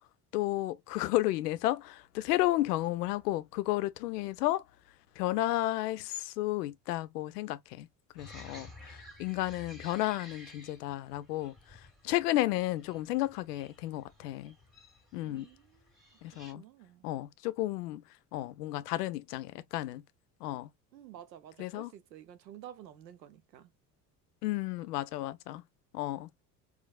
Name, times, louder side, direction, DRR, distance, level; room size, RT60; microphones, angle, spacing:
voice 1, 0.3-4.6 5.2-7.9 8.2-11.5 12.0-14.5 15.1-15.5 16.2-16.6 17.0-18.0 18.3-20.0 20.4-20.7 21.6-21.9 24.4-25.6 25.9-26.3, left 16 dB, 70° left, 0.5 m, -32 dB
sound 1, 8.2-16.5, left 1 dB, ahead, 1.5 m, -53 dB
voice 2, 15.2-15.9 16.5-17.1 20.9-23.7, right 11 dB, 85° right, 0.6 m, -51 dB
4.5 x 2.0 x 2.3 m
figure-of-eight pair, 65°, 49 cm